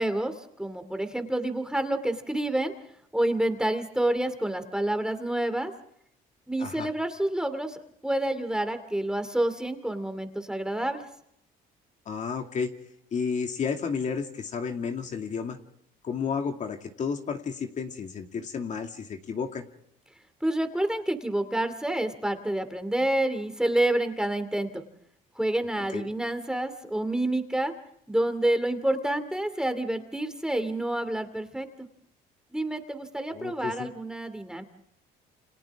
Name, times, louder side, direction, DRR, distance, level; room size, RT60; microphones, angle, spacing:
voice 1, 0.0-2.7 3.1-5.7 6.5-11.0 20.4-24.8 25.4-27.7 28.1-31.9 32.5-34.6, right 1 dB, 5° right, 8 dB, 2.5 m, -28 dB
voice 2, 12.1-12.7 13.1-15.6 16.0-19.7 25.9-26.0 33.3-33.9, left 6 dB, 45° left, 4 dB, 2.3 m, -32 dB
29.0 x 27.0 x 3.6 m, 0.72 s
cardioid pair, 110°, 17 cm